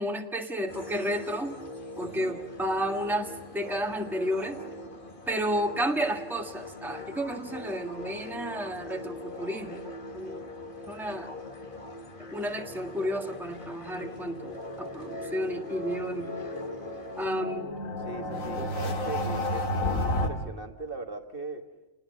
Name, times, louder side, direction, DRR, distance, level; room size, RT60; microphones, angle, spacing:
voice 1, 0.0-1.5 2.0-3.3 3.5-4.6 5.3-9.8 10.1-10.4 10.9-11.3 12.3-16.3 17.2-17.7 18.6-18.7, equal, ahead, 3 dB, 1.6 m, -31 dB
sound 1, 0.7-17.4, left 1 dB, 40° left, 1.8 m, -42 dB
voice 2, 2.0-2.4 18.0-21.6, right 3 dB, 45° right, 4 dB, 1.6 m, -39 dB
sound 2, 14.1-20.3, left 1 dB, 80° left, 2.5 m, -32 dB
29.0 x 20.0 x 6.5 m, 1.1 s
omnidirectional pair, 1.4 m